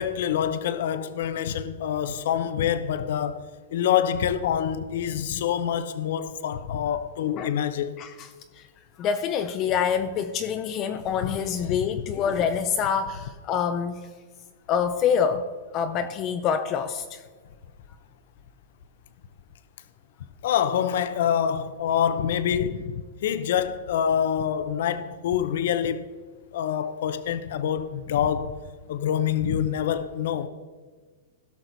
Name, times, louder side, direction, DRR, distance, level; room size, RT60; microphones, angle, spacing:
voice 1, 0.0-7.9 11.7-11.8 20.4-26.0 26.5-28.5 28.9-30.5, left 9 dB, 60° left, 0.7 m, -26 dB
voice 2, 8.0-8.7 9.0-14.1 14.7-15.5 15.7-17.2, left 7 dB, 25° left, 0.5 m, -26 dB
16.5 x 6.2 x 4.0 m
supercardioid pair, 165°, 0 cm